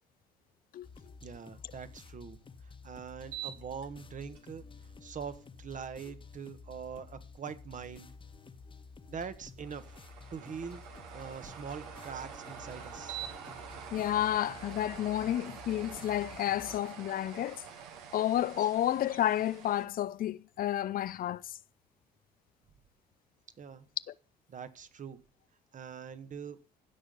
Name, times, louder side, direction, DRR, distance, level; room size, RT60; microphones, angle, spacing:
sound 1, 0.8-16.8, left 4 dB, 25° left, 1.3 m, -52 dB
voice 1, 1.2-2.4 2.6-4.6 5.0-8.1 9.1-9.9 10.3-10.8 11.1-13.2 23.6-23.9 24.5-25.2 25.7-26.6, right 6 dB, 40° right, 1.4 m, -43 dB
sound 2, 3.2-3.8 4.3-4.4 9.6-19.9, right 8 dB, 75° right, 1.8 m, -46 dB
voice 2, 13.9-17.6 18.1-21.6 24.1-24.2, left 12 dB, 45° left, 0.6 m, -31 dB
15.5 x 6.3 x 5.4 m
hypercardioid pair, 55°, 21 cm